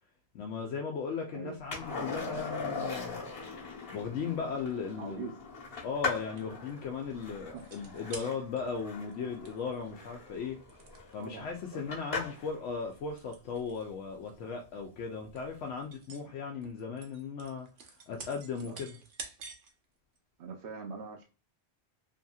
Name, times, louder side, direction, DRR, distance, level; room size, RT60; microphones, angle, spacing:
voice 1, 0.3-3.2 3.9-5.3 5.8-10.6 11.1-17.7 18.1-19.0, left 5 dB, 90° left, 0.9 m, -37 dB
Skateboard, 1.7-12.6 15.1-15.2, left 4 dB, 55° left, 1.2 m, -40 dB
voice 2, 5.0-5.3 7.5-7.6 11.2-12.0 18.6-18.8 20.4-21.2, right 4 dB, 60° right, 0.6 m, -42 dB
sound 1, 5.7-6.7 7.6-8.8 9.1-9.2 9.4-9.7 10.7-11.4 12.0-12.1 12.7-13.8 14.1-14.4 14.9-15.0 15.4-16.2 16.6-19.7 20.2-20.3, right 4 dB, 85° right, 0.9 m, -49 dB
2.7 x 2.6 x 2.3 m
omnidirectional pair, 1.2 m